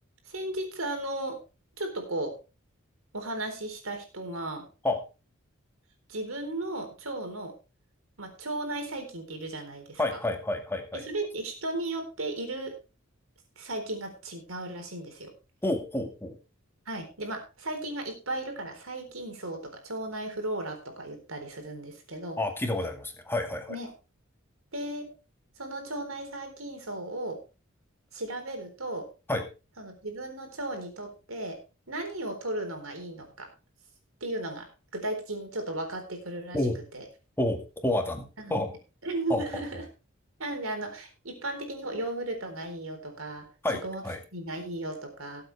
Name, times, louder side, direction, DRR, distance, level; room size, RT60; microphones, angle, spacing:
voice 1, 0.3-1.4 1.8-2.3 3.1-4.7 6.1-7.5 8.2-10.2 10.9-12.8 13.6-15.3 16.9-22.4 23.7-23.9 24.7-25.1 25.6-27.4 28.1-29.1 29.8-31.6 31.9-33.5 34.2-34.7 34.9-36.6 36.9-37.0 38.4-38.5 39.0-39.9 40.4-43.5 43.8-44.0 44.3-45.4, right 2 dB, 85° right, 5 dB, 4.0 m, -35 dB
voice 2, 10.0-11.0 15.6-16.4 22.4-23.8 29.3-29.4 36.5-36.8 37.4-38.7 39.3-39.4 43.6-44.2, left 1 dB, 10° left, 4 dB, 2.1 m, -29 dB
19.0 x 7.8 x 3.4 m, 0.31 s
head